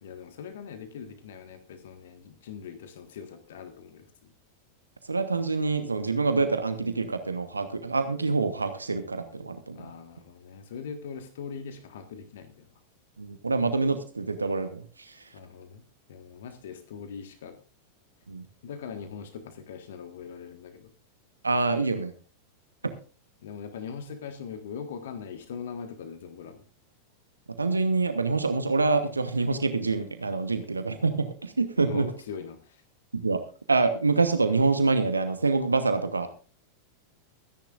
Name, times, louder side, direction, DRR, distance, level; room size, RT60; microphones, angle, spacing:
voice 1, 0.0-4.3 9.7-12.7 15.3-17.6 18.6-20.9 23.4-26.6 31.8-32.8, left 6 dB, 60° left, 8 dB, 1.6 m, -41 dB
voice 2, 5.1-9.8 13.2-15.2 18.3-18.4 21.4-22.1 22.8-22.9 27.6-32.1 33.1-33.4 33.7-36.3, right 3 dB, 80° right, 9 dB, 1.1 m, -26 dB
24.0 x 10.5 x 2.5 m, 0.36 s
figure-of-eight pair, 90°, 0 cm